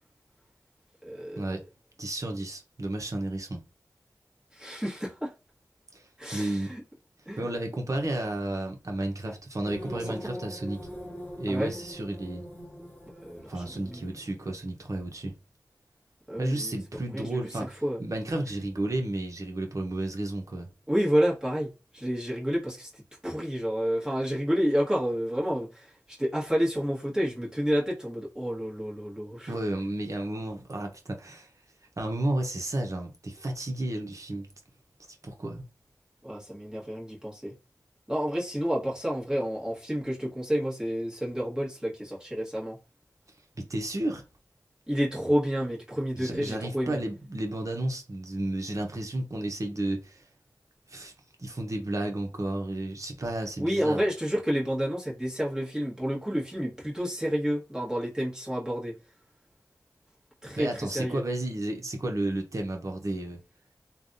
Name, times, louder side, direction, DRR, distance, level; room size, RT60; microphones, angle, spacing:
voice 1, 1.0-1.5 4.5-5.3 6.2-6.8 7.3-7.4 9.9-10.2 11.5-11.7 13.2-14.1 16.3-16.8 17.1-18.0 20.9-29.5 36.2-37.6 38.1-42.8 44.9-47.0 53.6-58.9 60.4-61.2, equal, 10° right, 1.4 m, -30 dB
voice 2, 2.0-3.6 5.9-6.0 6.3-6.7 7.4-10.9 11.4-12.4 13.5-15.3 16.4-20.7 29.5-31.5 32.0-34.5 35.2-35.6 43.6-44.2 46.1-50.2 50.9-51.1 51.4-54.0 60.6-63.4, right 1 dB, 50° right, 0.9 m, -32 dB
sound 1, 9.6-14.5, equal, 25° left, 1.2 m, -42 dB
3.3 x 2.3 x 2.6 m
cardioid pair, 45°, 7 cm